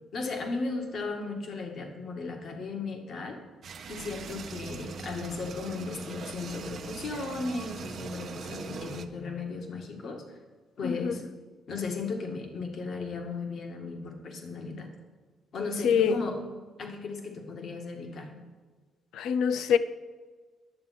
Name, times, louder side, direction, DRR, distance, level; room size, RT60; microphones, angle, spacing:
voice 1, 0.1-3.4 3.9-10.3 10.8-11.3 11.7-14.9 15.5-18.4, left 3 dB, 60° left, 1.8 m, -36 dB
sound 1, 3.6-9.1, right 6 dB, 60° right, 0.8 m, -41 dB
voice 2, 10.8-11.1 15.8-16.1 19.1-19.8, left 7 dB, 80° left, 0.5 m, -24 dB
11.0 x 7.2 x 5.8 m
cardioid pair, 90°, 0 cm